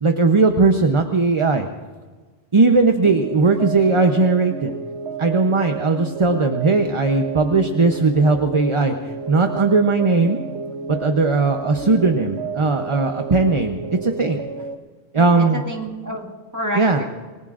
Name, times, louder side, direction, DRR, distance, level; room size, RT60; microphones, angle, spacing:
voice 1, 0.0-1.7 2.5-4.7 5.2-10.4 10.9-14.4 15.1-15.6 16.8-17.0, right 3 dB, 30° right, 5 dB, 0.7 m, -18 dB
sound 1, 3.0-14.7, right 5 dB, 90° right, 1.1 m, -31 dB
voice 2, 15.2-17.0, equal, 15° right, 0 dB, 2.1 m, -29 dB
27.5 x 20.0 x 2.5 m, 1.4 s
omnidirectional pair, 1.1 m